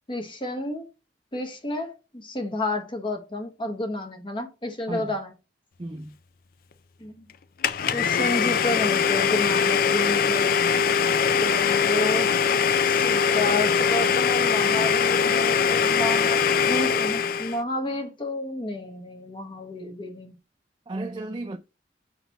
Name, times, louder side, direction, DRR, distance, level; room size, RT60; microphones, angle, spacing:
voice 1, 0.1-0.9 1.3-5.3 7.0-7.3 7.9-10.6 11.4-12.3 12.9-20.3, left 1 dB, 25° left, 1.1 m, -31 dB
voice 2, 5.8-6.2 20.9-21.6, right 2 dB, 25° right, 0.4 m, -33 dB
Domestic sounds home sounds, 7.6-17.6, left 6 dB, 50° left, 0.4 m, -22 dB
5.7 x 4.0 x 4.1 m
head